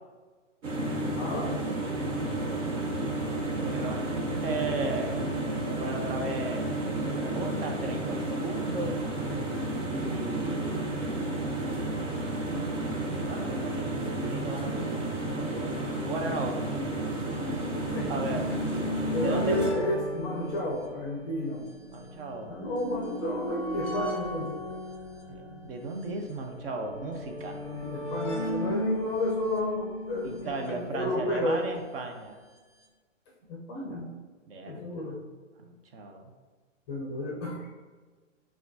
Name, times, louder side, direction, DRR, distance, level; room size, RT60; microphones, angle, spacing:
sound 1, 0.6-19.7, right 2 dB, 70° right, 1.1 m, -31 dB
voice 1, 1.2-1.6 17.9-18.1 19.1-21.6 22.5-24.6 27.6-31.6 33.5-34.1 34.6-35.2 36.9-37.7, left 1 dB, 20° left, -2 dB, 0.5 m, -31 dB
voice 2, 2.1-2.9 3.5-5.4 5.6-9.0 9.9-11.0 13.2-16.6 18.1-18.6 19.2-19.5 21.9-22.5 25.3-27.6 30.2-32.4 34.5-34.8 35.6-36.3, right 2 dB, 50° right, 4 dB, 0.5 m, -36 dB
sound 2, 15.4-15.5 16.3-31.6 32.6-32.7 32.8-32.9, left 1 dB, 5° left, 0.9 m, -37 dB
5.6 x 2.3 x 2.6 m, 1.4 s
hypercardioid pair, 130°, 38 cm